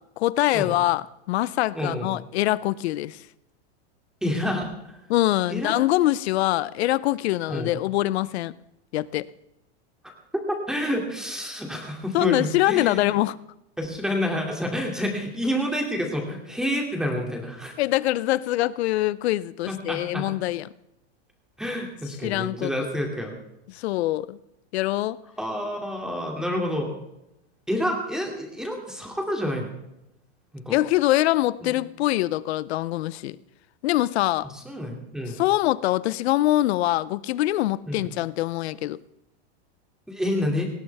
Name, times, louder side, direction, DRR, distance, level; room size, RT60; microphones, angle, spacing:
voice 1, 0.2-3.2 5.1-8.5 8.9-9.3 12.1-13.4 17.8-20.7 22.2-22.7 23.7-24.4 24.7-25.2 30.7-33.4 33.8-34.5 35.3-39.0, left 16 dB, 70° left, 0.7 m, -24 dB
voice 2, 1.7-2.1 4.2-5.0 5.5-5.7 7.5-7.7 10.0-10.1 10.7-13.1 13.8-17.7 19.7-20.3 21.6-23.4 25.4-26.9 27.7-29.7 30.5-30.8 31.6-31.7 34.6-35.4 37.9-38.0 40.1-40.7, left 1 dB, ahead, 2.6 m, -28 dB
19.0 x 17.0 x 3.5 m
supercardioid pair, 150°, 33 cm